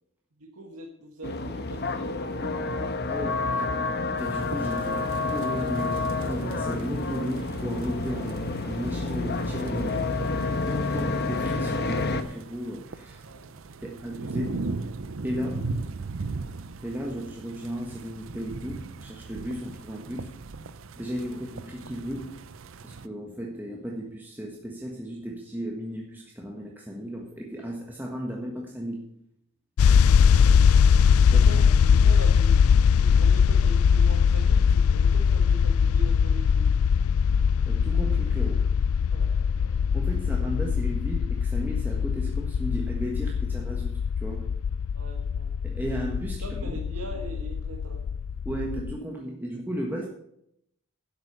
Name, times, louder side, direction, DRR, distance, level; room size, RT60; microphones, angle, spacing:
voice 1, 0.4-2.9 13.2-13.9 30.1-32.6 32.9-36.6 39.1-40.4 44.9-45.5 46.4-48.0, right 2 dB, 80° right, 0 dB, 1.7 m, -42 dB
Cars Pass Muezzin, 1.2-12.2, left 3 dB, 45° left, 1.1 m, -29 dB
voice 2, 3.1-3.8 4.2-10.1 10.7-13.2 13.8-14.6 15.2-15.8 16.8-20.4 21.0-22.4 22.8-29.1 31.3-31.6 37.7-38.7 39.7-44.5 45.6-46.8 48.4-50.1, equal, 10° right, -1 dB, 1.4 m, -35 dB
sound 1, 4.2-23.1, right 3 dB, 60° right, 0.6 m, -39 dB
sound 2, 29.8-49.0, left 6 dB, 80° left, 0.3 m, -21 dB
11.5 x 8.0 x 6.7 m, 0.74 s
head